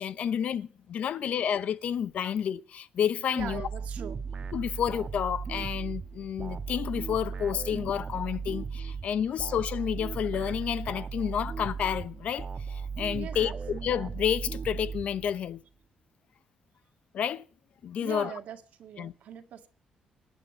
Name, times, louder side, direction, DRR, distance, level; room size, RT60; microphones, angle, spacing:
voice 1, 0.0-3.7 4.5-15.6 17.1-17.5 17.8-18.3 19.0-19.1, left 9 dB, 65° left, 0.8 m, -30 dB
voice 2, 3.3-4.2 9.0-9.2 13.1-13.6 18.0-19.7, right 9 dB, 75° right, 1.8 m, -41 dB
sound 1, 3.4-15.6, right 5 dB, 40° right, 1.2 m, -37 dB
26.0 x 9.1 x 5.3 m
cardioid pair, 105°, 2 cm